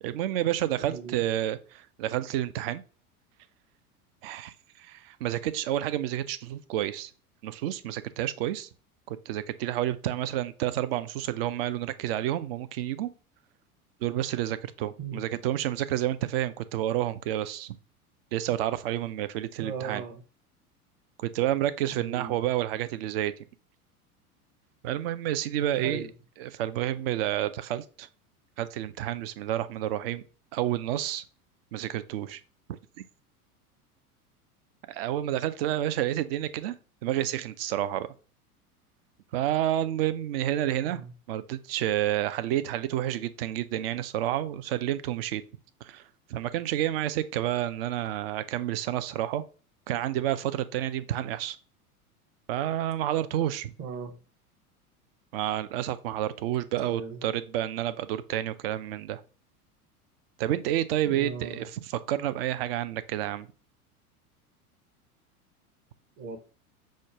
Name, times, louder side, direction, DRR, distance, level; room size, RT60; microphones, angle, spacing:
voice 1, 0.0-2.8 4.2-7.1 7.4-8.7 9.1-13.1 14.0-17.8 18.3-20.0 21.2-23.3 24.8-26.0 26.4-28.1 28.6-30.2 30.5-31.2 31.7-32.4 34.9-36.8 37.0-38.1 39.3-41.0 41.3-45.4 45.8-46.0 46.3-49.4 49.9-51.6 52.5-53.7 55.3-59.2 60.4-63.5, right 12 dB, 45° right, 0.4 m, -29 dB
voice 2, 0.8-1.2 15.0-15.2 19.6-20.2 21.9-22.4 25.8-26.1 40.8-41.1 53.8-54.2 56.8-57.2 61.0-61.7 66.2-66.4, right 5 dB, 30° right, 0.8 m, -38 dB
6.2 x 2.1 x 3.4 m
figure-of-eight pair, 85°, 45 cm